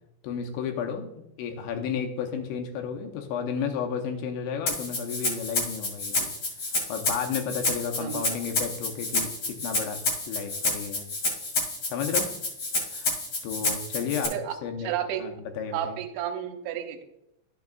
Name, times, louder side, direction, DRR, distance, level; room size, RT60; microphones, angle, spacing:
voice 1, 0.2-6.3 6.9-10.0 10.3-11.1 11.9-12.3 12.9-13.1 13.4-14.3 14.6-14.9 15.2-16.0, left 7 dB, 80° left, 3 dB, 3.0 m, -32 dB
Rattle (instrument), 4.7-14.3, left 2 dB, 50° left, 2.6 m, -29 dB
voice 2, 8.0-8.4 14.3-15.2 15.7-17.0, right 10 dB, 85° right, 4 dB, 3.1 m, -32 dB
12.0 x 7.0 x 2.4 m, 0.83 s
omnidirectional pair, 5.3 m